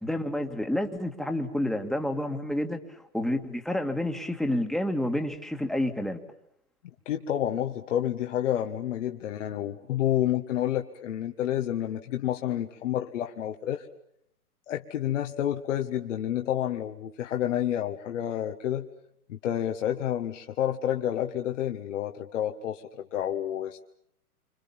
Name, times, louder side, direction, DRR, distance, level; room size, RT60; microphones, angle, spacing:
voice 1, 0.0-6.2, left 1 dB, ahead, 5 dB, 2.0 m, -29 dB
voice 2, 7.1-13.9 14.7-18.9 19.3-23.8, left 11 dB, 55° left, 4 dB, 1.7 m, -29 dB
28.5 x 26.5 x 7.3 m, 0.70 s
hypercardioid pair, 125°, 45 cm